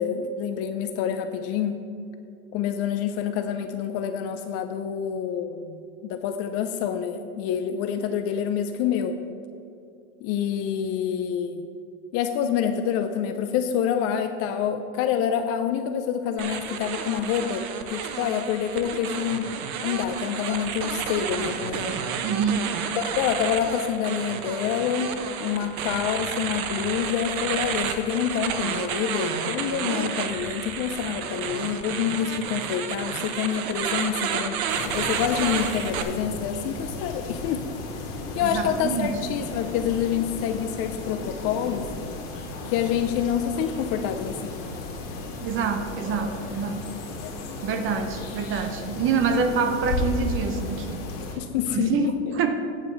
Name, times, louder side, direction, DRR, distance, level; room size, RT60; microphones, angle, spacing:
voice 1, 0.0-1.8 2.5-9.2 10.2-11.6 12.1-19.5 19.8-22.0 22.9-25.1 25.4-34.6 34.8-37.6 38.3-41.9 42.7-44.7 47.2-47.3 51.2-52.1, left 8 dB, 35° left, 8 dB, 0.4 m, -27 dB
sound 1, 16.4-36.0, right 7 dB, 80° right, 1.0 m, -31 dB
voice 2, 22.2-22.7 38.4-39.1 45.4-46.8 47.6-51.0 51.7-52.6, right 5 dB, 30° right, 7 dB, 0.8 m, -26 dB
sound 2, 34.7-51.3, left 2 dB, 55° left, 2.6 m, -34 dB
9.0 x 5.1 x 6.8 m, 2.4 s
supercardioid pair, 135°, 41 cm